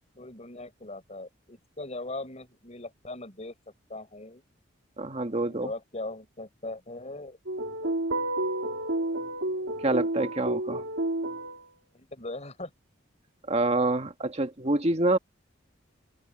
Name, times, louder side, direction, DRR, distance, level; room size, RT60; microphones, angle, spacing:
voice 1, 0.2-3.5 3.9-4.4 5.5-7.4 7.8-8.0 11.9-12.7, left 2 dB, 35° left, 7.0 m, -39 dB
voice 2, 5.0-5.7 9.8-10.8 13.5-15.2, right 2 dB, 35° right, 1.6 m, -26 dB
sound 1, 7.5-11.6, right 1 dB, 75° right, 2.5 m, -30 dB
open air
head